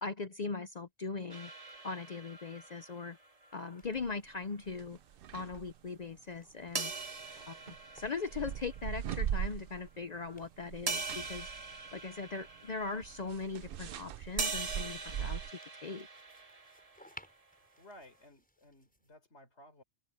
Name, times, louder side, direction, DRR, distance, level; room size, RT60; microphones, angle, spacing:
voice 1, 0.0-1.5 1.8-3.2 3.5-5.0 5.3-6.9 7.5-11.5 11.9-15.4 15.8-16.1, left 4 dB, 45° left, 0.7 m, -40 dB
sound 1, 1.0-9.1 10.1-19.2, equal, 5° left, 6.6 m, -63 dB
sound 2, 1.3-4.0 6.7-9.2 9.9-10.0 10.9-13.6 14.4-17.4, right 4 dB, 35° right, 1.4 m, -42 dB
sound 3, 3.8-4.1 4.6-5.8 6.7-10.0 10.3-15.5, right 10 dB, 60° right, 0.7 m, -41 dB
voice 2, 17.5-19.8, left 1 dB, 80° left, 4.3 m, -57 dB
open air
omnidirectional pair, 1.1 m